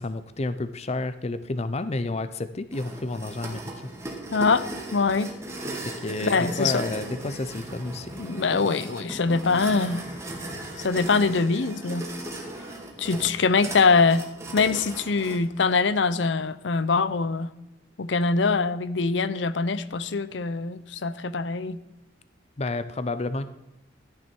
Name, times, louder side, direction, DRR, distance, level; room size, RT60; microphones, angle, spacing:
voice 1, 0.0-3.9 6.0-8.2 22.6-23.5, left 2 dB, 35° left, 13 dB, 0.6 m, -30 dB
sound 1, 2.7-15.4, right 1 dB, 15° right, 2.1 m, -37 dB
voice 2, 4.3-4.6 4.9-5.3 6.2-6.8 8.2-10.0 10.8-12.1 13.0-14.2 14.5-17.5 18.0-21.8, left 4 dB, 75° left, 15 dB, 0.6 m, -23 dB
13.5 x 9.7 x 4.5 m, 0.94 s
head